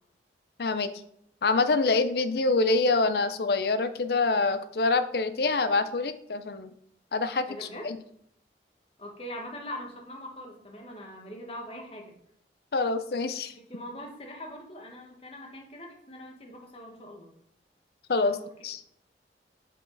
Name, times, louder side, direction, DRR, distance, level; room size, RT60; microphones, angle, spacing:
voice 1, 0.6-0.9 1.4-6.7 7.1-8.0 12.7-13.5 18.1-18.4 18.6-18.8, left 3 dB, 60° left, 11 dB, 0.5 m, -26 dB
voice 2, 7.5-8.0 9.0-12.2 13.7-17.4 18.2-18.4, left 1 dB, 30° left, 1 dB, 1.3 m, -42 dB
7.2 x 4.6 x 3.9 m, 0.71 s
head